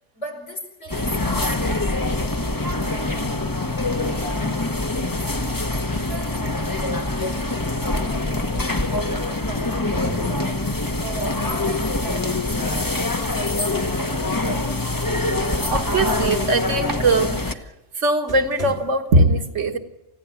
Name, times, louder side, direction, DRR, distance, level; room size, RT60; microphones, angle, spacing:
voice 1, 0.1-1.9 2.8-3.4 3.7-4.4 4.8-5.3 5.9-6.5 6.8-14.8, left 2 dB, 75° left, 5 dB, 5.5 m, -35 dB
sound 1, 0.9-17.5, left 2 dB, 20° left, 1.1 m, -24 dB
sound 2, 5.7-6.4 9.1-10.6 12.7-13.4 13.7-13.9 17.7-17.8 18.3-18.8, right 2 dB, 50° right, 4.4 m, -39 dB
voice 2, 15.7-17.6 18.0-19.8, right 2 dB, 80° right, 6 dB, 1.8 m, -20 dB
29.0 x 16.5 x 7.2 m, 0.99 s
omnidirectional pair, 1.2 m